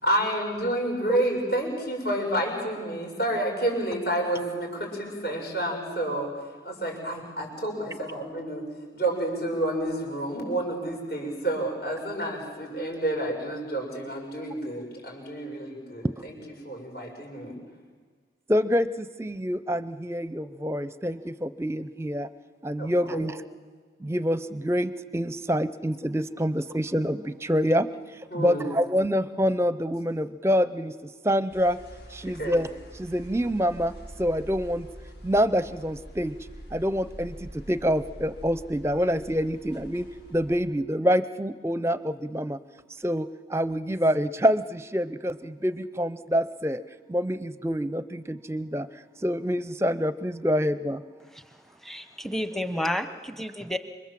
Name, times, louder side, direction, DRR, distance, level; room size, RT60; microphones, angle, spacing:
voice 1, 0.0-6.3 6.6-8.6 8.9-16.4 16.6-17.6 22.8-23.3 28.3-28.7 32.2-32.6, right 1 dB, 55° left, 0 dB, 6.5 m, -29 dB
voice 2, 18.5-22.3 22.6-23.4 24.0-27.9 28.3-31.8 32.1-32.7 33.0-33.9 34.2-34.9 35.2-36.4 36.7-42.6 43.0-46.8 47.1-48.9 49.2-51.0, equal, 15° right, 14 dB, 0.7 m, -26 dB
sound 1, 31.5-40.5, equal, 75° left, 7.6 m, -45 dB
voice 3, 51.8-53.8, left 1 dB, ahead, 9 dB, 1.0 m, -31 dB
27.5 x 24.5 x 7.5 m, 1.5 s
head